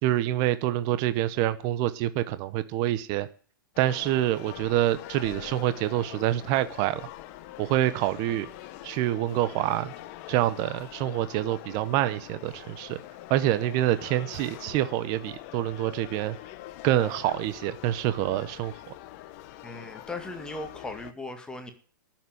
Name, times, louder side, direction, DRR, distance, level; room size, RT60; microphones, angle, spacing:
voice 1, 0.0-3.3 3.8-7.1 7.6-8.5 8.8-9.9 10.3-13.0 13.3-16.4 16.8-18.9, right 13 dB, 35° right, 13 dB, 0.9 m, -26 dB
sound 1, 3.7-21.1, left 14 dB, 40° left, 1.1 m, -44 dB
voice 2, 19.6-21.7, left 2 dB, 5° left, 6 dB, 1.9 m, -38 dB
12.0 x 7.4 x 9.4 m, 0.42 s
hypercardioid pair, 140°, 11 cm